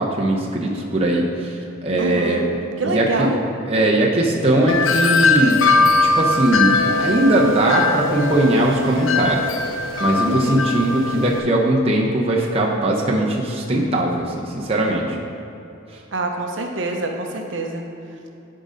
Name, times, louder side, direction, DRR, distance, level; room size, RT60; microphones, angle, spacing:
voice 1, 0.0-2.6 2.8-3.3 3.7-5.6 6.0-9.5 10.0-15.2, right 1 dB, 30° right, -1 dB, 0.7 m, -20 dB
voice 2, 2.0-2.4 2.8-3.4 10.2-10.6 16.1-17.8, right 1 dB, 70° right, 3 dB, 0.7 m, -25 dB
Wind chime, 4.7-11.4, left 3 dB, 75° left, 0.6 m, -20 dB
10.5 x 3.8 x 5.1 m, 2.8 s
head